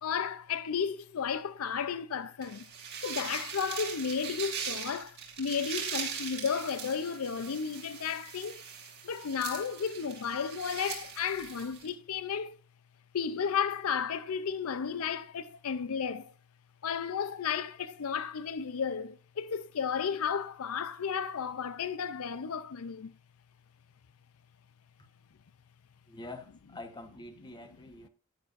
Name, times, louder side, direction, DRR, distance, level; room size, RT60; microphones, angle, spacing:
voice 1, 0.0-2.7 3.0-8.6 9.0-12.6 13.1-16.3 16.8-23.1, left 6 dB, 85° left, 0.5 m, -33 dB
sound 1, 2.4-11.9, right 7 dB, 55° right, 2.4 m, -40 dB
voice 2, 26.0-28.1, left 2 dB, 20° left, 1.1 m, -46 dB
10.5 x 9.3 x 2.5 m
head